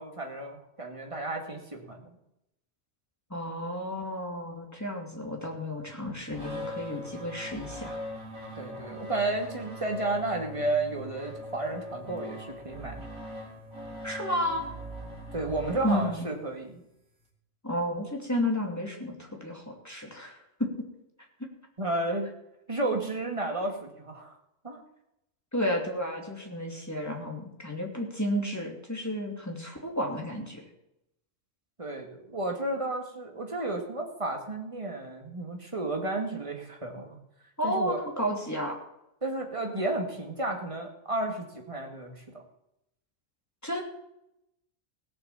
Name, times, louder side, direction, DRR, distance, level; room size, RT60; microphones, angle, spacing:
voice 1, 0.0-2.2 8.6-13.1 15.3-16.8 21.8-22.3 22.7-24.3 24.6-24.8 31.8-37.2 37.6-38.0 39.2-42.4, right 2 dB, 25° right, 2 dB, 2.3 m, -32 dB
voice 2, 3.3-7.9 14.0-14.6 15.8-16.3 17.6-20.9 21.4-21.5 25.5-30.6 37.6-38.8 43.6-43.8, equal, 10° left, 1 dB, 2.7 m, -32 dB
sound 1, 6.3-16.6, equal, 80° right, 2.9 m, -41 dB
17.5 x 6.9 x 7.2 m, 0.83 s
omnidirectional pair, 1.4 m